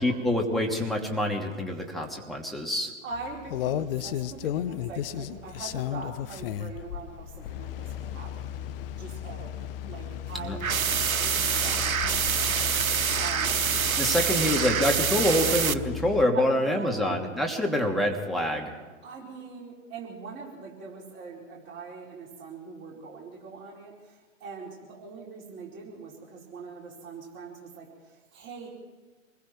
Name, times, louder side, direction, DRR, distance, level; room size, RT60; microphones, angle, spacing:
voice 1, 0.0-2.9 10.3-10.6 13.9-18.7, left 1 dB, ahead, -1 dB, 2.8 m, -26 dB
voice 2, 3.0-8.6 9.0-11.4 11.6-13.7 16.3-17.2 19.0-28.7, right 4 dB, 25° right, -3 dB, 4.7 m, -42 dB
sound 1, 3.1-16.3, left 10 dB, 40° left, 0.9 m, -35 dB
sound 2, 10.6-15.7, right 7 dB, 75° right, 1.0 m, -26 dB
27.5 x 21.5 x 4.6 m, 1.2 s
figure-of-eight pair, 115°, 42 cm